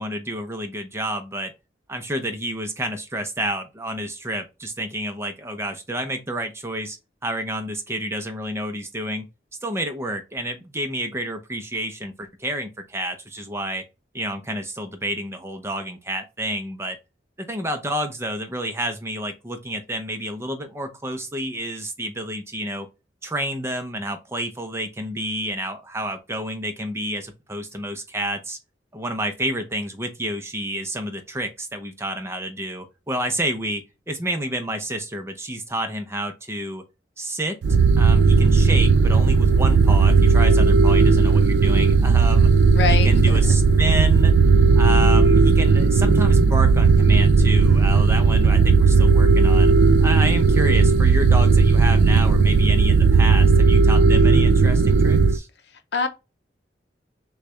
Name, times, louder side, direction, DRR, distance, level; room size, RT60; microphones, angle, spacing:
voice 1, 0.0-1.5 1.9-7.0 7.2-9.3 9.6-13.8 14.1-17.0 17.4-22.9 23.2-28.6 28.9-36.8 37.2-37.6 38.0-42.5 42.9-44.4 44.8-49.7 50.0-55.5, right 1 dB, 15° right, 0.7 m, -29 dB
sound 1, 37.6-55.4, right 4 dB, 70° right, 0.3 m, -15 dB
voice 2, 42.7-43.4 55.9-56.1, left 5 dB, 65° left, 0.7 m, -24 dB
6.5 x 2.4 x 3.1 m
head